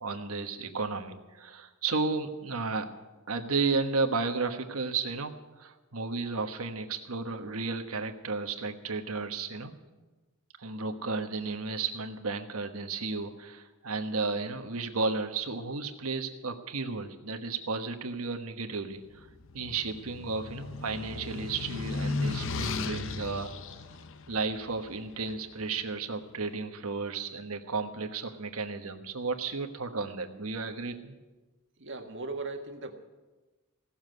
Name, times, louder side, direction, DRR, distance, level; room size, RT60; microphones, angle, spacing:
voice 1, 0.0-2.9 3.3-9.7 10.6-19.3 19.5-23.5 24.3-31.2, right 4 dB, 75° right, 6 dB, 1.3 m, -33 dB
sound 1, 19.2-25.5, left 3 dB, 60° left, 0.7 m, -36 dB
voice 2, 31.8-32.9, right 3 dB, 55° right, 4 dB, 1.6 m, -38 dB
16.5 x 7.3 x 9.4 m, 1.2 s
head